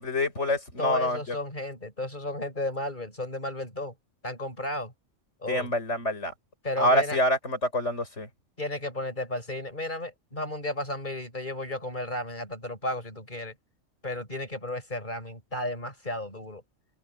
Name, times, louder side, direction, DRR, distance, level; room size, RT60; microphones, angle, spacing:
voice 1, 0.0-1.3 5.5-6.3 6.8-8.3, left 1 dB, 65° left, 6.3 m, -26 dB
voice 2, 0.8-3.9 4.2-4.9 5.4-5.7 6.6-7.2 8.6-13.5 14.0-16.6, left 1 dB, 40° left, 6.3 m, -33 dB
omnidirectional pair, 1.3 m